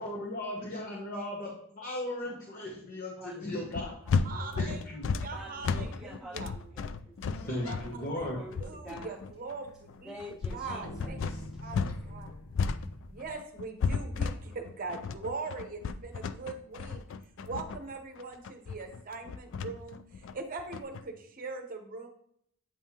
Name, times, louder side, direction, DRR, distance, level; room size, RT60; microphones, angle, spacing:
voice 1, 0.0-3.9 4.6-5.0 7.5-8.4, left 1 dB, 40° left, -3 dB, 1.1 m, -36 dB
voice 2, 3.2-3.7 4.0-4.8 5.3-7.2 8.2-9.2 10.0-10.9 11.3-11.4, equal, ahead, -3 dB, 0.6 m, -48 dB
sound 1, 3.7-12.0 12.3-21.0, left 5 dB, 60° left, 0.4 m, -33 dB
voice 3, 4.2-4.9 5.2-6.5 7.7-8.3 8.6-10.1 10.5-11.2 11.6-12.3 13.1-17.1 17.4-22.1, right 4 dB, 40° right, 5 dB, 0.8 m, -41 dB
sound 2, 7.2-13.4, left 1 dB, 75° left, 0.7 m, -47 dB
8.3 x 5.5 x 2.9 m, 0.69 s
head